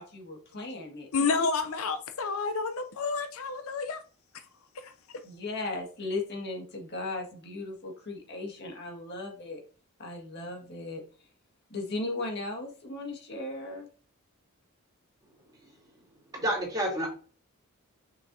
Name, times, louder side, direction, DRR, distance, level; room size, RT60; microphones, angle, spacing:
voice 1, 0.0-1.1 5.2-9.6 10.0-11.0 11.7-13.9, left 2 dB, 50° left, 1 dB, 1.8 m, -37 dB
voice 2, 1.1-4.0 4.7-4.9, left 4 dB, 70° left, 9 dB, 0.6 m, -30 dB
voice 3, 16.3-17.1, right 1 dB, 15° right, -4 dB, 3.1 m, -29 dB
6.7 x 6.0 x 2.7 m, 0.38 s
head